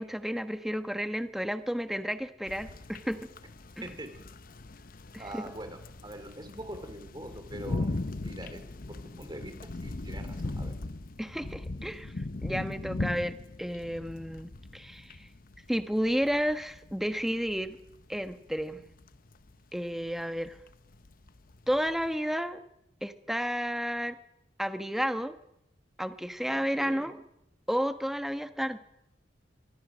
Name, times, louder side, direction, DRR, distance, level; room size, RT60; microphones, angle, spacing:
voice 1, 0.0-3.2 5.1-5.4 11.2-12.1 12.4-15.3 15.7-17.8 18.1-18.8 19.7-20.6 21.7-22.6 23.0-24.2 24.6-25.3 26.0-27.2 27.7-28.8, equal, ahead, 9 dB, 1.2 m, -32 dB
sound 1, 2.5-22.2, left 2 dB, 50° left, 0.8 m, -39 dB
voice 2, 5.2-7.9 8.2-8.6 8.9-10.7 26.5-27.1, right 1 dB, 25° right, 7 dB, 3.1 m, -43 dB
25.0 x 24.0 x 6.3 m, 0.82 s
head